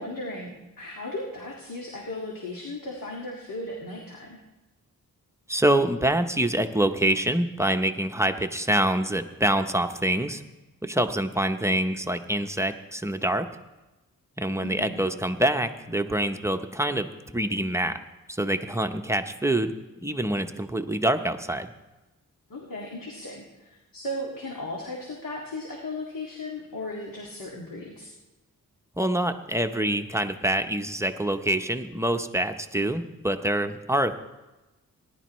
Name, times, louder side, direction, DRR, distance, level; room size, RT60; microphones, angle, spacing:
voice 1, 0.0-4.4 14.6-15.1 22.5-28.1, left 1 dB, 75° left, -2 dB, 2.0 m, -36 dB
voice 2, 5.5-10.4 10.8-13.5 14.4-17.1 17.3-17.9 18.3-19.8 20.0-21.7 29.0-34.2, right 1 dB, 10° right, 7 dB, 0.7 m, -25 dB
19.5 x 11.0 x 3.1 m, 1.1 s
wide cardioid pair, 75°, 34 cm